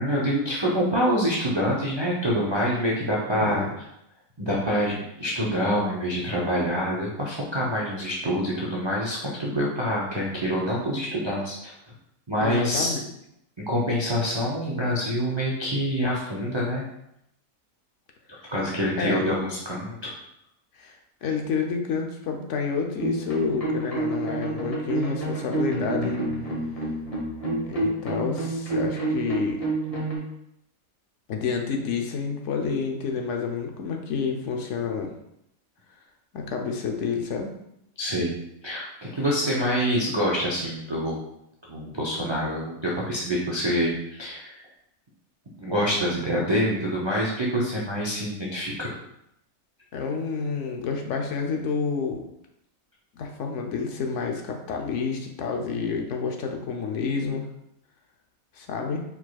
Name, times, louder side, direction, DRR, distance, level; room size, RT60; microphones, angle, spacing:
voice 1, 0.0-3.8 4.4-11.7 12.3-13.0 13.6-16.8 18.5-20.1 38.0-38.4 38.6-41.2 41.7-44.6 45.6-48.9, equal, 30° right, -5 dB, 0.5 m, -26 dB
voice 2, 3.3-3.8 12.4-13.1 19.0-19.4 20.8-26.2 27.6-29.6 31.3-35.1 36.3-37.5 49.9-52.2 53.1-57.4 58.5-59.0, left 5 dB, 65° left, 3 dB, 0.9 m, -29 dB
sound 1, 23.0-30.2, right 2 dB, 25° left, 1.3 m, -28 dB
4.7 x 4.0 x 2.3 m, 0.79 s
omnidirectional pair, 1.5 m